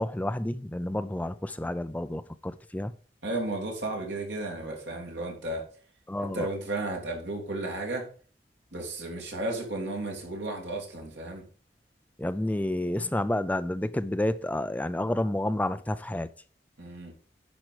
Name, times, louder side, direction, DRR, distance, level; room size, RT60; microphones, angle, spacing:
voice 1, 0.0-2.9 6.1-6.5 12.2-16.3, left 1 dB, 10° left, 0.4 m, -30 dB
voice 2, 3.2-5.7 6.2-8.1 8.7-11.4 16.8-17.1, right 2 dB, 85° right, 2.8 m, -33 dB
10.5 x 4.6 x 4.9 m
head